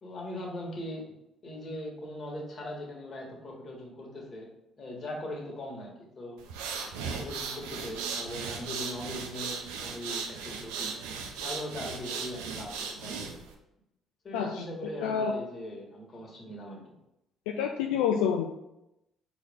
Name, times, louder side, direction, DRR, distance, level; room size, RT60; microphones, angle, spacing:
voice 1, 0.0-1.1 1.4-4.5 4.8-5.9 6.2-6.4 7.0-11.0 11.4-13.3 14.2-17.0, left 1 dB, 45° left, -1 dB, 1.5 m, -40 dB
sound 1, 6.4-13.5, right 5 dB, 85° right, 0.5 m, -37 dB
voice 2, 14.3-14.6 15.0-15.3 17.5-18.5, left 7 dB, 85° left, 3 dB, 0.3 m, -28 dB
4.4 x 3.2 x 3.5 m, 0.88 s
hypercardioid pair, 60°, 0 cm